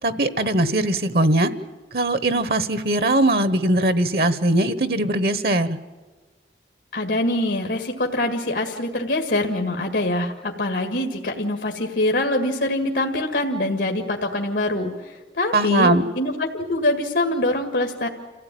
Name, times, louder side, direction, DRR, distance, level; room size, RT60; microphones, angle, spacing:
voice 1, 0.0-1.5 1.9-5.8 15.5-16.1, right 1 dB, 60° right, 12 dB, 1.0 m, -20 dB
voice 2, 6.9-15.9 16.2-18.1, left 1 dB, 85° left, 3 dB, 1.9 m, -24 dB
27.5 x 16.0 x 9.2 m, 1.3 s
head